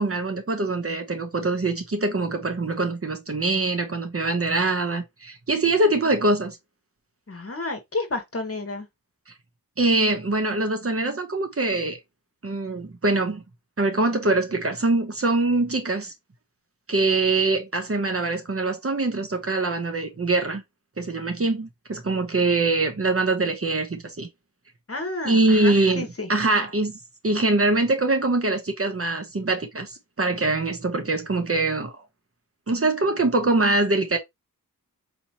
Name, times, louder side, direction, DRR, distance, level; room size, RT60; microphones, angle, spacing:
voice 1, 0.0-6.6 9.8-12.0 12.4-13.4 13.8-16.1 16.9-20.6 21.0-24.3 25.2-27.0 27.2-32.0 32.7-34.2, right 2 dB, 40° right, 0.9 m, -23 dB
voice 2, 7.3-8.9 24.9-26.3, left 2 dB, 40° left, 1.1 m, -31 dB
4.3 x 2.9 x 2.8 m
wide cardioid pair, 80°, 35 cm